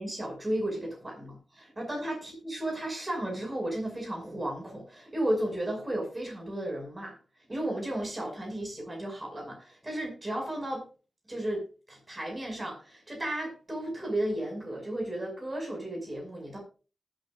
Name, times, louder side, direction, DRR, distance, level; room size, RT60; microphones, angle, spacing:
voice 1, 0.0-7.2 7.5-10.8 11.3-16.6, right 1 dB, 20° right, 1 dB, 5.7 m, -34 dB
20.0 x 9.0 x 2.5 m, 0.34 s
wide cardioid pair, 155°, 0 cm